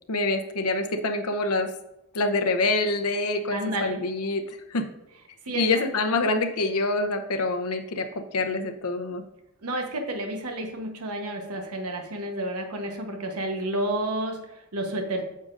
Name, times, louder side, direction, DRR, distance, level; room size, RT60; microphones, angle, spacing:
voice 1, 0.1-1.7 2.1-4.8 5.5-9.2, left 2 dB, 80° left, 7 dB, 0.8 m, -26 dB
voice 2, 3.5-4.0 5.4-5.6 9.6-15.2, right 1 dB, 80° right, 4 dB, 1.0 m, -30 dB
9.2 x 6.4 x 2.5 m, 0.89 s
head